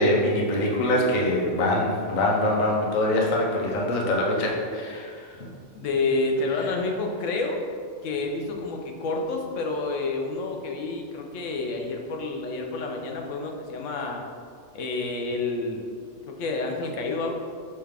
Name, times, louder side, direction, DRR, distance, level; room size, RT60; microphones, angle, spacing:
voice 1, 0.0-5.4, left 1 dB, 50° left, -1 dB, 0.6 m, -24 dB
voice 2, 5.7-7.6 8.0-14.2 14.7-15.8 16.3-17.3, left 3 dB, 85° left, 2 dB, 1.0 m, -29 dB
5.6 x 2.3 x 3.3 m, 2.1 s
omnidirectional pair, 1.3 m